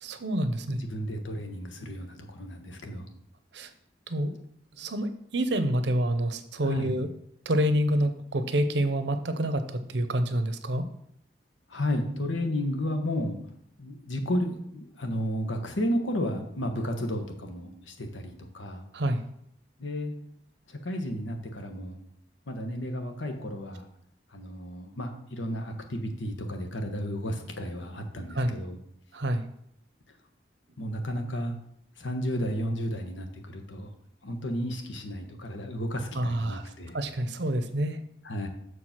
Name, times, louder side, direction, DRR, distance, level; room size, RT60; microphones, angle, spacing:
voice 1, 0.0-0.8 3.5-3.7 4.1-4.4 4.8-7.1 7.5-10.9 18.9-19.2 28.3-28.5 29.1-29.4 36.1-38.0, right 1 dB, 70° right, 9 dB, 0.7 m, -28 dB
voice 2, 0.7-3.1 6.6-7.0 11.7-13.4 13.8-18.8 19.8-20.1 20.7-22.0 22.5-23.9 24.3-28.8 30.8-31.6 32.0-33.9 34.2-37.0 38.2-38.5, equal, 90° left, 5 dB, 1.2 m, -32 dB
6.6 x 4.8 x 5.9 m, 0.71 s
head